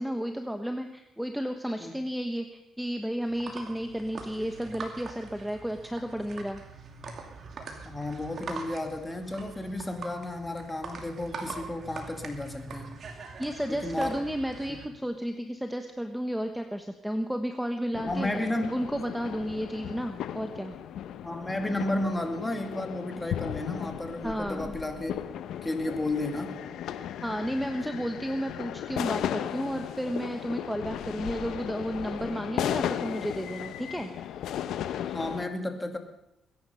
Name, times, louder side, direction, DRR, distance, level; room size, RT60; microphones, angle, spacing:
voice 1, 0.0-6.6 13.4-20.7 24.2-24.7 27.0-34.1, equal, ahead, 6 dB, 1.1 m, -33 dB
sound 1, 3.2-14.9, right 4 dB, 55° right, 2.5 m, -43 dB
voice 2, 7.8-13.0 13.7-14.3 14.7-14.8 18.0-18.9 21.2-25.1 25.6-26.6 35.0-36.0, left 1 dB, 15° left, 5 dB, 2.3 m, -33 dB
sound 2, 17.9-35.5, left 10 dB, 80° left, 0.8 m, -36 dB
22.0 x 10.5 x 5.6 m, 0.85 s
cardioid pair, 90°, 0 cm